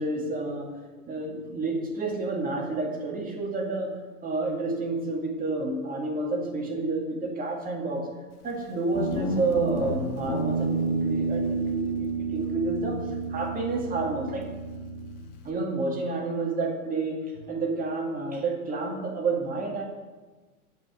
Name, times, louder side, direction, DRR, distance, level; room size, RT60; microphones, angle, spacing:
voice 1, 0.0-8.2 8.4-14.5 15.4-19.8, right 3 dB, 20° right, 0 dB, 2.2 m, -30 dB
Guitar, 8.9-15.5, right 2 dB, 35° left, 1.8 m, -30 dB
15.0 x 5.7 x 9.7 m, 1.3 s
hypercardioid pair, 125°, 44 cm